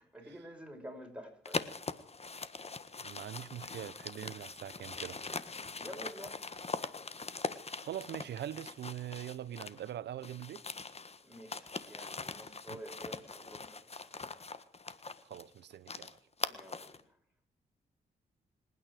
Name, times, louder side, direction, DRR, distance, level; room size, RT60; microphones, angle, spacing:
voice 1, 0.0-1.7 5.8-6.5 11.2-14.2 16.4-17.2, equal, 5° right, 6.1 m, -49 dB
sound 1, 1.4-9.9 10.2-17.0, left 4 dB, 35° left, 1.5 m, -42 dB
voice 2, 3.0-5.2 7.8-10.6 12.7-12.8 15.2-16.2, right 11 dB, 80° right, 0.9 m, -43 dB
26.0 x 9.7 x 5.0 m
supercardioid pair, 55°, 18 cm